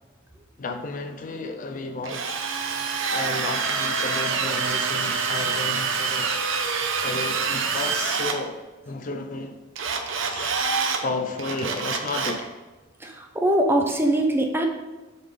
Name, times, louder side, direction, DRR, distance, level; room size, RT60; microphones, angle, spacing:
voice 1, 0.6-2.3 2.7-6.4 7.0-8.6 8.9-9.6 10.3-10.6 11.0-12.5, left 3 dB, 40° left, 5 dB, 0.5 m, -32 dB
Drill, 2.0-8.4 9.8-11.0 11.4-12.4, right 5 dB, 65° right, 0.8 m, -26 dB
voice 2, 13.0-14.7, right 1 dB, 10° right, 2 dB, 0.7 m, -22 dB
7.8 x 4.0 x 5.1 m, 1.2 s
head